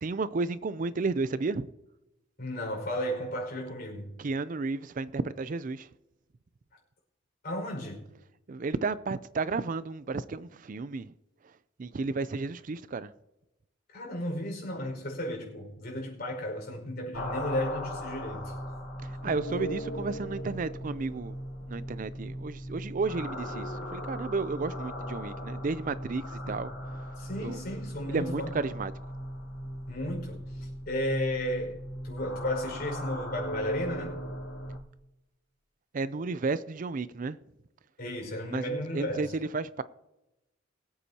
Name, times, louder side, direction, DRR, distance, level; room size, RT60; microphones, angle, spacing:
voice 1, 0.0-1.7 4.2-5.9 8.5-11.1 11.8-13.1 19.0-21.3 21.7-27.0 27.4-27.6 28.1-28.9 35.9-37.4 38.5-39.8, right 3 dB, 45° right, 0.4 m, -32 dB
voice 2, 2.4-4.2 7.4-8.1 13.9-18.5 19.2-19.4 26.4-26.6 27.2-28.6 29.9-34.2 38.0-39.3, left 1 dB, 50° left, 5.4 m, -34 dB
sound 1, 17.1-34.8, equal, 85° left, 3.4 m, -38 dB
23.0 x 8.2 x 2.9 m
head